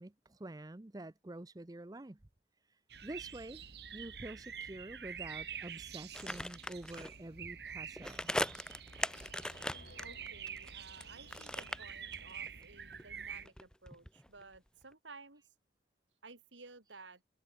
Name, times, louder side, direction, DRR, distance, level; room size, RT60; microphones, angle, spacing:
voice 1, 0.0-2.2 3.0-3.6 3.9-8.3, right 1 dB, 20° right, 0.6 m, -47 dB
sound 1, 2.9-13.5, right 7 dB, 60° right, 2.0 m, -47 dB
sound 2, 6.1-7.1 8.0-11.1 11.3-12.6 12.9-14.6 14.8-14.9, left 1 dB, 5° left, 0.9 m, -40 dB
sound 3, 8.3-13.0, left 1 dB, 60° left, 4.6 m, -61 dB
voice 2, 10.0-15.4 16.2-17.2, right 3 dB, 85° right, 3.3 m, -55 dB
head